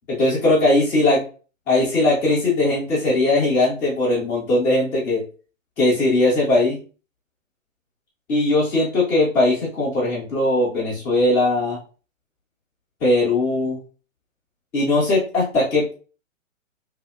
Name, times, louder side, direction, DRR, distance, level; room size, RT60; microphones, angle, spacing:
voice 1, 0.1-1.2 1.7-5.2 5.8-6.8 8.3-11.8 13.0-13.8 14.7-15.9, left 2 dB, 5° left, -9 dB, 0.3 m, -19 dB
2.7 x 2.6 x 2.4 m, 0.37 s
figure-of-eight pair, 120°, 39 cm